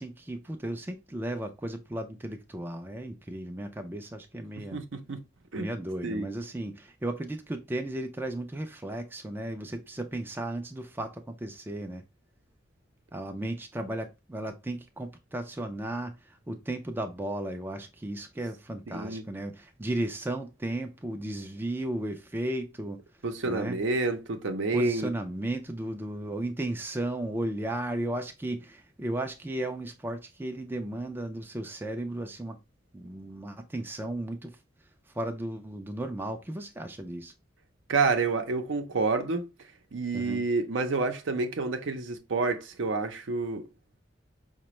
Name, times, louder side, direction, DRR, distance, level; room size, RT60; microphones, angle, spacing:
voice 1, 0.0-4.8 5.6-12.0 13.1-23.0 23.5-23.8 24.7-32.6 32.9-34.6 35.1-37.3 40.1-40.4, right 1 dB, 10° right, 0.3 m, -35 dB
voice 2, 4.7-5.2 5.5-5.7 6.0-6.3 18.9-19.2 23.2-25.1 37.9-39.5 39.9-43.7, right 3 dB, 70° right, 0.6 m, -28 dB
4.9 x 2.1 x 3.0 m
head